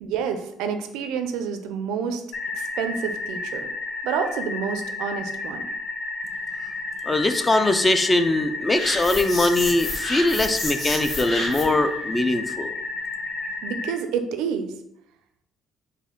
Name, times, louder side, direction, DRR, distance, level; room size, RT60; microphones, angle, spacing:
voice 1, 0.0-2.2 2.5-3.7 4.0-5.6 13.6-14.7, right 7 dB, 90° right, 8 dB, 0.4 m, -28 dB
sound 1, 2.3-13.9, left 3 dB, 65° left, 0.6 m, -32 dB
voice 2, 7.1-12.7, left 2 dB, 20° left, 8 dB, 0.4 m, -21 dB
sound 2, 8.8-11.8, left 1 dB, 40° left, 1.5 m, -30 dB
4.2 x 2.5 x 3.7 m, 0.79 s
cardioid pair, 105°, 0 cm